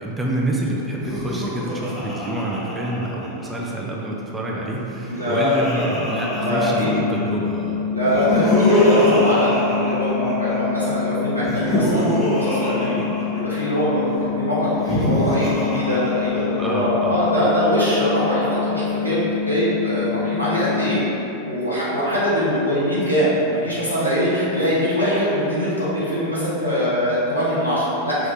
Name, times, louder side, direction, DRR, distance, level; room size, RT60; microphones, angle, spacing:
voice 1, 0.0-7.9 16.6-17.5, right 1 dB, 10° right, -4 dB, 0.6 m, -27 dB
Laughter, 0.9-3.7 4.8-7.4 8.0-10.8 11.4-13.8 14.7-16.8, left 1 dB, 10° left, 1.1 m, -24 dB
voice 2, 5.0-5.8 6.4-6.9 7.9-13.0 13.3-21.0 21.4-28.3, equal, 85° left, -10 dB, 1.4 m, -22 dB
sound 1, 6.3-21.0, left 8 dB, 45° left, 1.0 m, -27 dB
5.0 x 3.2 x 3.0 m, 2.9 s
figure-of-eight pair, 90°, 0 cm